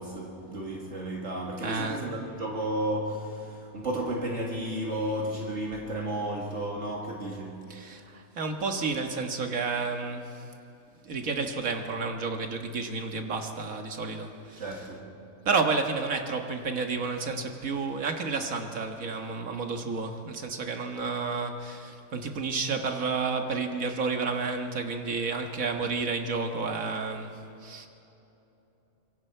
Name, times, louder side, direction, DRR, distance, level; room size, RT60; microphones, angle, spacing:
voice 1, 0.0-7.7 14.6-15.1, right 1 dB, 55° right, -2 dB, 2.3 m, -33 dB
voice 2, 1.6-2.1 7.7-10.4 11.0-14.9 15.5-27.9, right 4 dB, 80° right, 4 dB, 2.0 m, -31 dB
26.0 x 22.5 x 4.6 m, 2.9 s
omnidirectional pair, 1.4 m